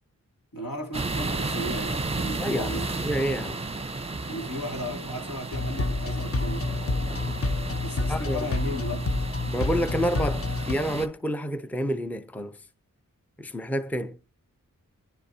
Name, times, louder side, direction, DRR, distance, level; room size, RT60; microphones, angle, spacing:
voice 1, 0.5-2.9 4.3-6.7 7.8-9.1, equal, 80° left, 2.8 m, -35 dB
sound 1, 0.9-11.1, right 3 dB, 15° right, 1.0 m, -33 dB
voice 2, 2.4-3.6 8.1-8.4 9.5-12.6 13.4-14.2, equal, 5° left, 0.6 m, -29 dB
sound 2, 5.5-10.7, left 2 dB, 40° left, 0.9 m, -28 dB
25.0 x 10.5 x 2.8 m
cardioid pair, 55°, 34 cm